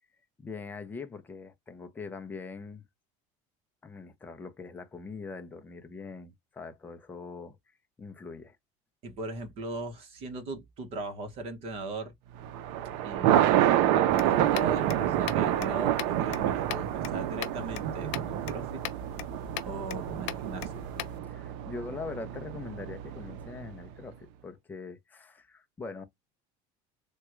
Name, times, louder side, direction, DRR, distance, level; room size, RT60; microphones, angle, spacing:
voice 1, 0.4-2.8 3.8-7.6 8.0-8.6 21.3-26.0, left 4 dB, 10° left, 0.5 m, -42 dB
voice 2, 9.0-12.1 13.0-18.8 19.7-20.9, right 2 dB, 40° right, 1.0 m, -39 dB
Thunder, 12.4-23.7, right 12 dB, 70° right, 0.5 m, -28 dB
sound 1, 14.1-21.2, left 12 dB, 85° left, 0.6 m, -41 dB
3.5 x 2.2 x 2.9 m
cardioid pair, 175°, 16 cm